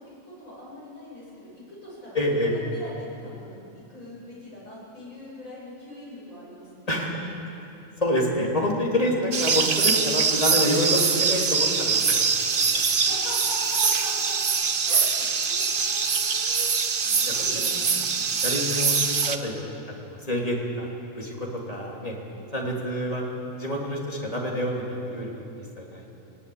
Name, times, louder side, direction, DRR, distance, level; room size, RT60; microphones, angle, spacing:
voice 1, 0.0-7.0 12.8-14.4 14.8-18.5 22.3-22.5, left 1 dB, 75° left, -7 dB, 7.7 m, -42 dB
voice 2, 2.1-2.5 6.9-7.3 8.0-12.8 17.2-18.1 18.4-20.9 21.1-22.2 22.5-23.2 23.6-26.2, left 1 dB, 25° left, -2 dB, 3.3 m, -28 dB
sound 1, 9.3-19.4, right 5 dB, 45° right, 1.0 m, -23 dB
19.0 x 18.5 x 8.7 m, 2.8 s
omnidirectional pair, 1.4 m